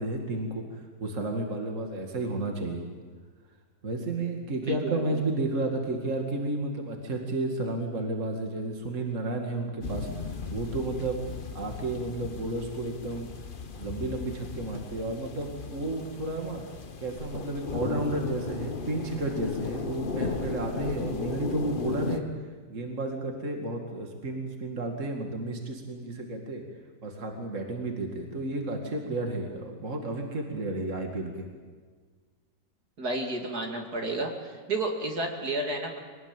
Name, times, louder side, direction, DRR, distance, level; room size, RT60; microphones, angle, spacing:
voice 1, 0.0-2.8 3.8-11.2 11.5-13.3 13.8-16.6 17.0-22.3 22.7-26.6 27.0-31.5, right 2 dB, 45° right, 2 dB, 2.6 m, -32 dB
voice 2, 4.6-5.2 33.0-36.0, right 2 dB, 60° right, 2 dB, 3.0 m, -31 dB
sound 1, 9.8-22.2, left 5 dB, 35° left, 1.0 m, -36 dB
23.5 x 19.0 x 9.0 m, 1.5 s
omnidirectional pair, 1.9 m